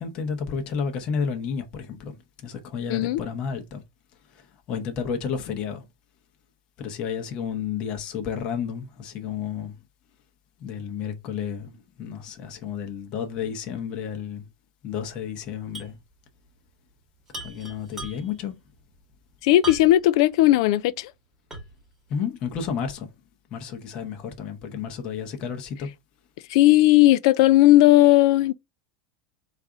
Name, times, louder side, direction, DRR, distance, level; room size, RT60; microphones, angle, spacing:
voice 1, 0.0-3.8 4.3-5.9 6.8-9.8 10.6-14.5 14.8-16.0 17.4-18.6 22.1-23.1 23.5-25.9, left 7 dB, 30° left, 0.8 m, -31 dB
sound 1, 15.7-16.0 16.3-16.4 17.3-18.5 19.6-20.2 20.7-20.8 21.5-21.9, right 2 dB, 10° right, 1.2 m, -38 dB
voice 2, 19.4-21.1 26.5-28.5, left 15 dB, 55° left, 0.3 m, -17 dB
4.0 x 2.5 x 4.8 m
supercardioid pair, 170°, 3 cm